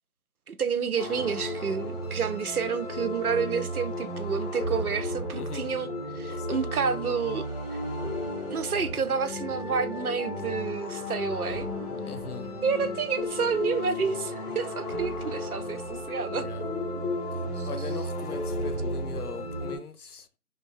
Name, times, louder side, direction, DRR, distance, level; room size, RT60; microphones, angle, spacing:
voice 1, 0.5-7.5 8.5-11.7 12.6-16.5 17.6-17.7, right 6 dB, 70° right, 0.6 m, -29 dB
sound 1, 1.0-19.8, left 1 dB, 20° right, 1.7 m, -33 dB
voice 2, 5.3-5.7 6.3-6.7 12.1-12.5 16.3-16.6 17.7-20.3, left 5 dB, 75° left, 0.6 m, -40 dB
2.8 x 2.6 x 3.0 m
figure-of-eight pair, 175°, 45 cm